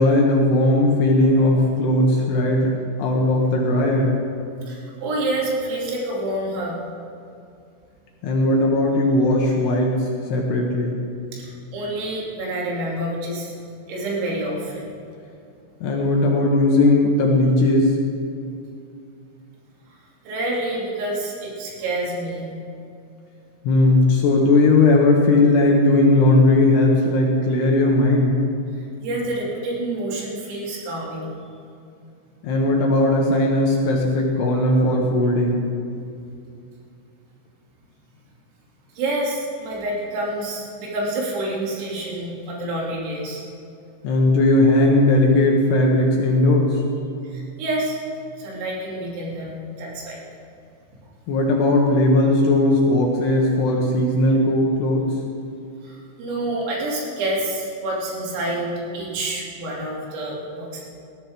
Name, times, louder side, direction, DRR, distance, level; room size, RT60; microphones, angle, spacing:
voice 1, 0.0-2.7 3.0-4.2 8.2-11.0 15.8-17.9 23.6-28.4 32.4-35.6 44.0-46.8 51.3-55.1, left 2 dB, 70° left, -1 dB, 2.8 m, -18 dB
voice 2, 4.7-6.8 11.3-13.5 13.9-15.0 20.3-22.5 29.0-31.3 38.9-43.5 47.2-48.0 48.4-50.2 55.8-60.9, right 1 dB, 80° right, -4 dB, 5.4 m, -28 dB
19.5 x 14.5 x 3.6 m, 2.6 s
omnidirectional pair, 5.9 m